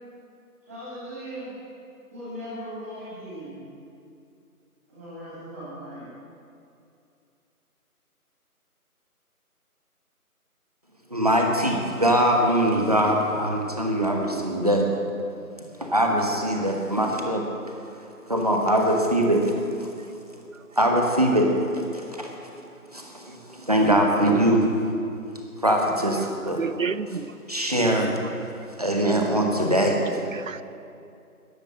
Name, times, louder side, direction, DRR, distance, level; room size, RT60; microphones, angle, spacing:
voice 1, 0.6-1.5 2.1-3.6 4.9-6.1, equal, 10° right, -11 dB, 2.5 m, -38 dB
voice 2, 11.1-14.9 15.8-17.5 18.3-19.5 19.8-19.9 20.8-22.3 22.9-24.7 25.6-26.6 27.5-28.2 28.8-30.2, right 1 dB, 25° right, 1 dB, 1.2 m, -22 dB
voice 3, 26.6-27.3 27.7-28.3 30.3-30.6, right 5 dB, 60° right, 15 dB, 0.6 m, -30 dB
13.5 x 10.5 x 7.7 m, 2.5 s
figure-of-eight pair, 170°, 45 cm